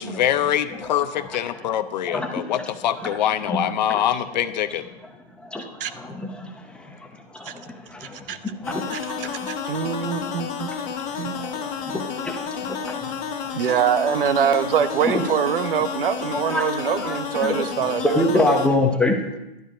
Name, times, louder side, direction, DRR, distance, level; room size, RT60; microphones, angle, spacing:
voice 1, 0.0-4.9, left 10 dB, 45° left, 12 dB, 0.7 m, -24 dB
voice 2, 1.2-1.7 2.0-2.7 3.0-3.1 3.5-3.6 3.9-4.0 5.4-9.5 9.8-13.2 15.0-15.2 16.3-19.2, left 2 dB, 5° left, 3 dB, 0.7 m, -27 dB
voice 3, 8.0-8.4 8.9-10.7 11.2-11.5 13.5-18.5, right 8 dB, 60° right, 12 dB, 0.9 m, -24 dB
sound 1, 8.6-18.7, left 7 dB, 20° left, 1.4 m, -31 dB
12.0 x 10.5 x 5.0 m, 0.96 s
hypercardioid pair, 155°, 31 cm